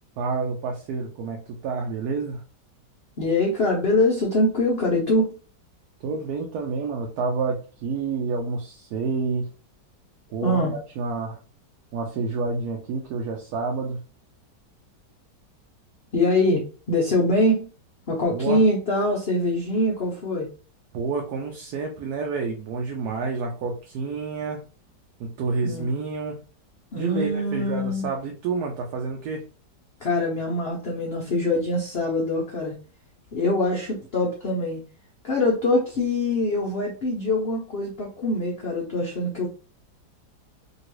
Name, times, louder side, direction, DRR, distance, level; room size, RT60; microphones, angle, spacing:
voice 1, 0.2-2.4 6.0-9.5 10.3-10.6 11.0-11.4 11.9-14.0 18.3-18.6 20.9-24.6 25.2-26.4 27.0-29.4, right 4 dB, 70° right, 1 dB, 1.0 m, -29 dB
voice 2, 3.2-5.3 10.4-10.7 16.1-17.7 18.1-20.5 25.6-25.9 26.9-28.1 30.0-32.7 33.3-34.8 35.2-39.5, left 1 dB, 85° left, -1 dB, 0.5 m, -23 dB
2.9 x 2.7 x 3.0 m, 0.37 s
omnidirectional pair, 1.9 m